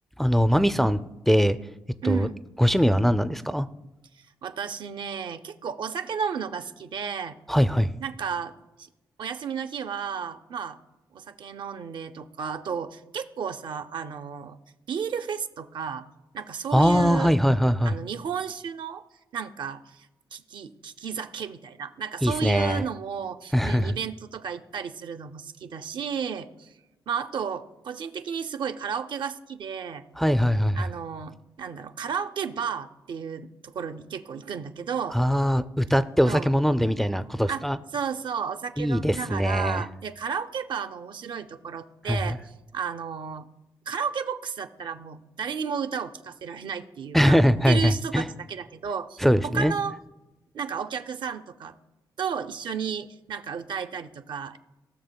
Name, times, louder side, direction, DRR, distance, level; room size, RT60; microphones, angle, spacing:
voice 1, 0.2-1.0 1.3-1.6 2.0-2.3 2.6-3.7 7.5-7.9 16.7-17.9 22.2-22.8 23.5-23.9 30.2-30.9 35.1-37.8 38.8-39.8 42.1-42.2 47.1-48.3 49.2-49.7, equal, 5° left, 11 dB, 0.4 m, -21 dB
voice 2, 2.0-2.4 4.4-7.4 8.0-8.5 8.8-8.9 9.2-10.8 11.1-14.6 14.9-16.0 16.3-17.3 17.8-19.0 19.3-20.1 20.3-26.7 27.1-30.0 30.7-35.2 36.3-36.5 37.5-37.6 37.9-42.4 42.7-43.5 43.9-50.0 50.5-51.8 52.2-54.6, right 6 dB, 70° right, 8 dB, 0.5 m, -33 dB
18.5 x 6.3 x 2.2 m, 1.0 s
cardioid pair, 70°, 8 cm